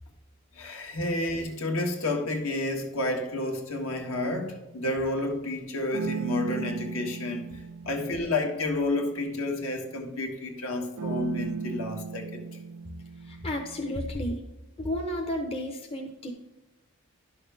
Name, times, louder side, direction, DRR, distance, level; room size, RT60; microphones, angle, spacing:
voice 1, 0.5-12.3, left 2 dB, 70° left, 1.7 m, -30 dB
sound 1, 3.9-4.9 5.9-10.0 11.0-14.2, right 5 dB, 80° right, 0.4 m, -38 dB
voice 2, 13.2-14.4 14.8-16.3, left 1 dB, 25° left, 0.8 m, -32 dB
11.0 x 6.4 x 3.4 m
head